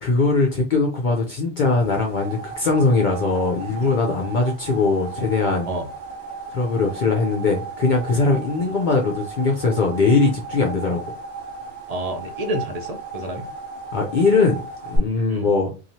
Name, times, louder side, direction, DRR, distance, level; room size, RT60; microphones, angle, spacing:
voice 1, 0.0-5.7 6.5-11.0 13.9-14.6 14.9-15.7, left 3 dB, 55° left, 1 dB, 0.6 m, -20 dB
sound 1, 1.8-15.0, right 3 dB, 65° right, 1.0 m, -36 dB
voice 2, 11.9-13.5 15.3-15.5, right 1 dB, 45° right, 3 dB, 0.5 m, -29 dB
3.0 x 2.3 x 2.7 m, 0.32 s
omnidirectional pair, 1.2 m